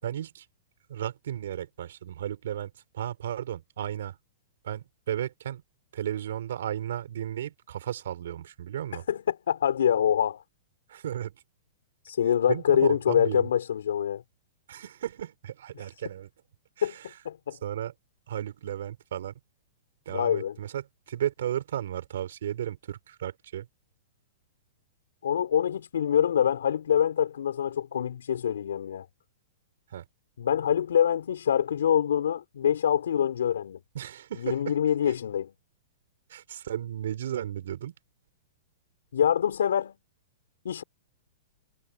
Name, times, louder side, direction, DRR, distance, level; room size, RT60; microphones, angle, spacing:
voice 1, 0.0-0.5 0.9-4.2 4.6-5.6 5.9-9.0 10.9-11.4 12.5-13.5 14.7-16.3 16.8-17.1 17.5-17.9 18.3-19.3 20.1-23.7 29.9-30.0 33.9-34.8 35.1-35.2 36.3-37.9, right 11 dB, 75° right, 4.0 m, -34 dB
voice 2, 9.1-10.4 12.1-14.2 16.8-17.0 17.2-17.6 20.1-20.5 25.2-29.1 30.4-33.8 34.4-35.5 39.1-40.0 40.6-40.8, left 9 dB, 85° left, 4.0 m, -25 dB
hypercardioid pair, 145°, 0 cm